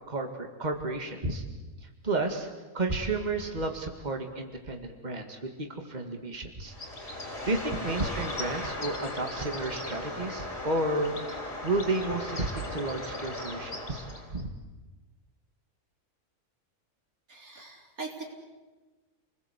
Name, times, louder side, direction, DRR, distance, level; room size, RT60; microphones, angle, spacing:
voice 1, 0.1-1.4 1.8-2.5 2.7-6.7 7.0-14.5, right 2 dB, 30° right, 4 dB, 2.3 m, -32 dB
Bird, 6.7-14.4, left 1 dB, 50° left, 3.7 m, -37 dB
voice 2, 17.3-18.2, right 4 dB, 90° right, 1 dB, 4.3 m, -41 dB
29.0 x 20.5 x 8.2 m, 1.2 s
omnidirectional pair, 1.5 m